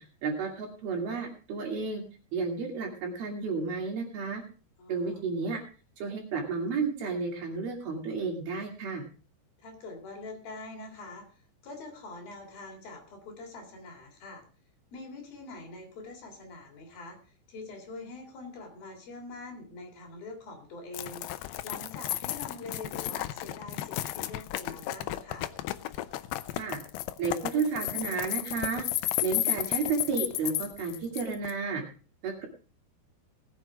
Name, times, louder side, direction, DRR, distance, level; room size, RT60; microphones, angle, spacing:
voice 1, 0.0-2.0 2.3-4.4 4.9-5.6 6.0-9.0 26.6-26.8 27.2-28.8 29.2-31.8 32.2-32.5, right 4 dB, 60° right, 2 dB, 4.2 m, -32 dB
voice 2, 4.8-5.3 9.6-14.4 14.9-25.5, left 3 dB, 55° left, 2 dB, 4.9 m, -44 dB
sound 1, 20.9-31.5, left 15 dB, 80° left, 2.4 m, -33 dB
19.0 x 7.9 x 4.7 m, 0.37 s
omnidirectional pair, 5.1 m